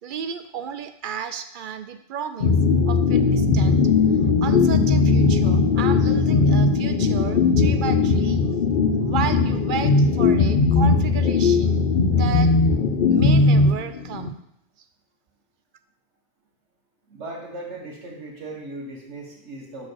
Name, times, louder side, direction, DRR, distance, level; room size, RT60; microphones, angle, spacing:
voice 1, 0.0-2.6 2.8-3.8 4.4-8.4 9.0-12.5 13.1-14.4, right 7 dB, 60° right, 10 dB, 0.6 m, -33 dB
sound 1, 2.4-14.3, left 4 dB, 55° left, 0.7 m, -19 dB
voice 2, 17.1-19.9, right 2 dB, 90° right, -1 dB, 1.8 m, -37 dB
6.1 x 4.1 x 6.2 m, 0.77 s
omnidirectional pair, 1.1 m